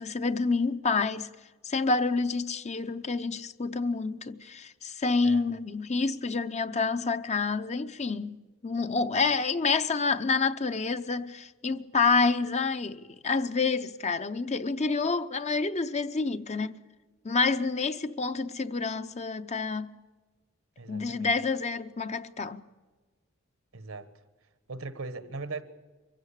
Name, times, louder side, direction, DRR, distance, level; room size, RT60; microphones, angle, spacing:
voice 1, 0.0-1.3 1.6-8.4 8.6-16.8 17.2-19.9 20.9-22.6, left 4 dB, 35° left, 0.7 m, -28 dB
voice 2, 20.8-21.3 23.7-24.1 24.7-25.6, right 3 dB, 80° right, 1.5 m, -39 dB
24.0 x 15.5 x 8.3 m
head